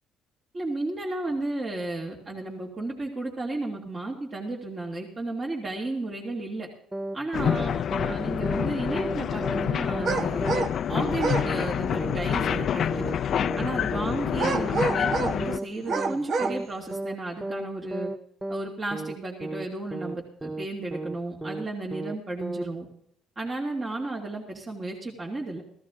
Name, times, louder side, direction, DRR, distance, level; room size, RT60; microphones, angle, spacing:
voice 1, 0.5-6.7 7.1-10.5 10.9-13.1 13.6-18.1 18.5-22.9 23.4-25.6, right 2 dB, 30° right, -1 dB, 2.5 m, -33 dB
sound 1, 6.9-7.2 7.4-7.7 7.9-8.2 8.4-8.7 8.9-9.2 9.4-9.7 9.9-10.2 10.4-10.7 10.9-11.2 11.4-11.7 11.9-12.2 12.4-12.7 12.9-13.2 13.4-13.7 13.9-14.2 14.4-14.7 14.9-15.2 15.4-15.7 15.9-16.2 16.4-16.7 16.9-17.2 17.4-17.7 17.9-18.2 18.4-18.7 18.9-19.2 19.4-19.7 19.9-20.2 20.4-20.7 20.9-21.2 21.4-21.7 21.9-22.2 22.4-22.7, right 1 dB, 10° right, 0.6 m, -33 dB
sound 2, 7.3-15.6, left 9 dB, 55° left, 0.4 m, -27 dB
Dogs Barking through Fence on Summer Day (binaural), 10.1-10.8 11.1-11.5 14.4-15.4 15.8-16.6, right 4 dB, 55° right, 1.1 m, -28 dB
15.0 x 15.0 x 3.8 m, 0.73 s
cardioid pair, 95°, 0 cm